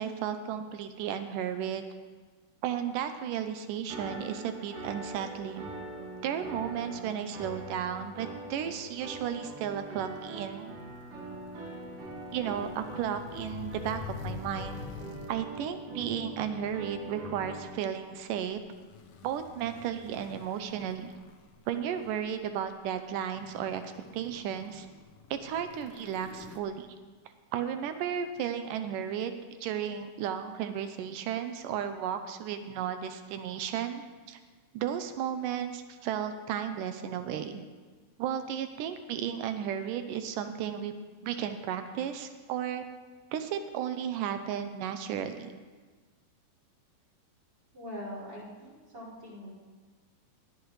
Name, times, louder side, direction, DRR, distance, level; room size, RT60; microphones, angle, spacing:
voice 1, 0.0-1.8 2.6-5.7 6.2-10.8 12.3-14.9 15.3-18.6 19.2-21.1 21.7-24.9 25.3-27.0 27.5-29.3 29.6-34.4 34.7-37.6 38.2-40.9 41.2-42.8 43.3-45.5, right 9 dB, 80° right, 8 dB, 1.9 m, -34 dB
sound 1, 3.9-17.6, right 1 dB, 60° right, 3.4 m, -43 dB
sound 2, 10.2-15.6 16.4-16.7 18.5-22.3 22.9-23.0 23.4-26.6, left 6 dB, 90° left, 1.6 m, -47 dB
voice 2, 47.7-49.5, equal, 25° right, -6 dB, 5.5 m, -43 dB
19.5 x 13.0 x 3.2 m, 1.4 s
omnidirectional pair, 4.5 m